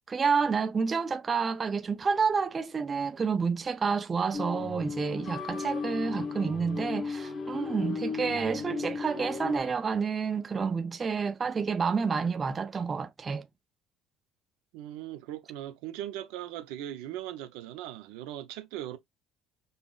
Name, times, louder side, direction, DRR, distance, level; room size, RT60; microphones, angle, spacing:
voice 1, 0.1-13.5, right 5 dB, 25° right, 0.4 m, -29 dB
sound 1, 4.3-9.6, left 5 dB, 35° left, 0.8 m, -35 dB
voice 2, 14.7-19.0, right 12 dB, 85° right, 0.6 m, -39 dB
5.4 x 2.0 x 2.4 m
cardioid pair, 115°, 0 cm